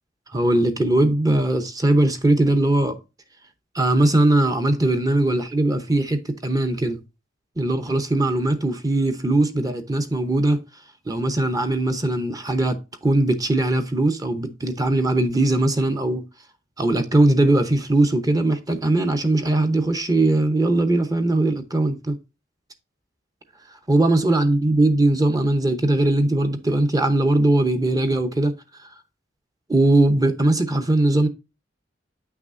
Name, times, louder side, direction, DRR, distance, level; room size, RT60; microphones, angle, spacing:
voice 1, 0.3-3.0 3.7-7.0 7.6-10.6 11.1-16.2 16.8-22.2 23.9-28.5 29.7-31.3, right 2 dB, 20° right, 0.8 m, -20 dB
8.8 x 5.9 x 2.6 m
head